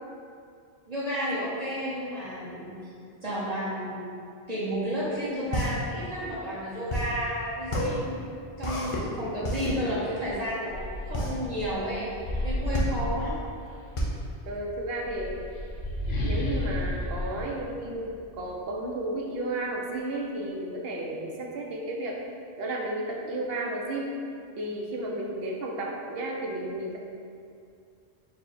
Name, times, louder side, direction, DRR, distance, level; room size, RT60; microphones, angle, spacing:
voice 1, 0.9-2.7 3.2-4.1 4.5-8.1 8.6-12.1 12.4-13.4, equal, 40° right, -11 dB, 1.0 m, -32 dB
sound 1, 5.0-15.4, equal, 40° left, 0.5 m, -32 dB
sound 2, 10.3-13.9 14.8-18.5, left 1 dB, 70° left, 0.8 m, -33 dB
voice 2, 14.5-15.5 16.2-22.2 22.6-24.1 24.6-27.0, right 1 dB, 70° right, -1 dB, 0.8 m, -33 dB
4.5 x 2.0 x 4.1 m, 2.4 s
omnidirectional pair, 1.1 m